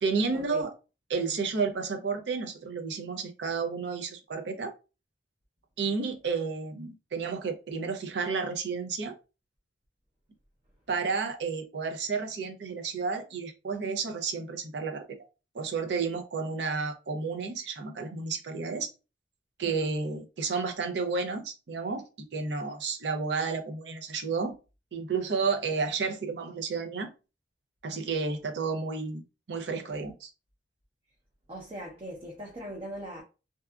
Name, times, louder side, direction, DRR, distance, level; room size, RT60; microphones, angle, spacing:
voice 1, 0.0-0.7 1.1-4.7 5.8-9.1 10.9-15.0 15.5-18.9 19.6-22.1 22.3-24.5 24.9-27.1 27.8-30.3, right 4 dB, 75° right, 0.5 m, -31 dB
voice 2, 31.5-33.2, equal, 35° right, 0.6 m, -40 dB
2.7 x 2.3 x 2.3 m
head